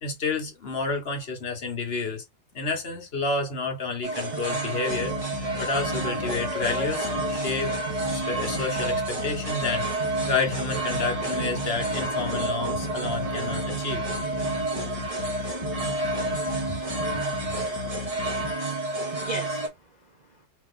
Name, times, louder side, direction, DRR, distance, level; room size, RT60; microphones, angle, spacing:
voice 1, 0.0-2.2 2.5-7.7 8.1-9.9 10.3-14.0, left 3 dB, 40° left, 1.1 m, -30 dB
sound 1, 4.0-19.7, right 2 dB, 25° right, 0.9 m, -29 dB
sound 2, 4.9-18.5, left 5 dB, 55° left, 0.9 m, -37 dB
voice 2, 18.5-20.5, right 2 dB, 50° right, 0.5 m, -40 dB
3.6 x 2.9 x 3.6 m
omnidirectional pair, 2.0 m